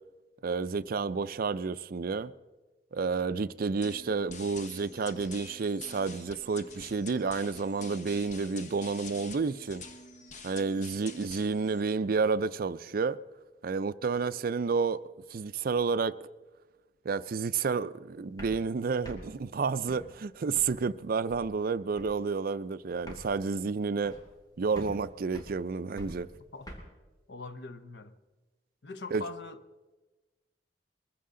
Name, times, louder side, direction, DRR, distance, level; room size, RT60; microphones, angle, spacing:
voice 1, 0.4-2.3 2.9-9.8 10.4-13.2 13.6-15.0 15.3-16.2 17.0-24.2 24.6-26.3 29.1-29.3, right 4 dB, 55° right, 0.4 m, -30 dB
sound 1, 3.8-11.8, left 4 dB, 45° left, 1.1 m, -47 dB
sound 2, 18.2-20.9 21.3-21.7 22.0-22.3 22.6-22.7 22.9-24.5 24.7-26.8, equal, 25° left, 2.9 m, -47 dB
voice 2, 27.3-28.1 28.8-29.6, left 3 dB, 70° left, 0.8 m, -42 dB
22.0 x 15.0 x 3.8 m
head